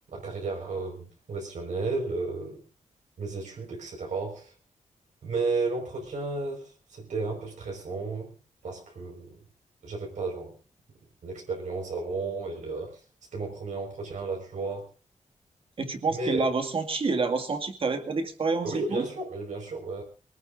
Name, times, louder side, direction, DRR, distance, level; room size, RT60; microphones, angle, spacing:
voice 1, 0.1-2.6 3.2-4.5 5.2-8.3 8.6-9.4 9.8-10.6 11.2-13.0 13.3-14.9 16.1-16.5 18.6-20.0, right 3 dB, 75° right, 0 dB, 5.3 m, -33 dB
voice 2, 15.8-19.0, right 4 dB, 45° right, 6 dB, 2.2 m, -28 dB
24.5 x 19.0 x 2.6 m, 0.35 s
wide cardioid pair, 160°, 13 cm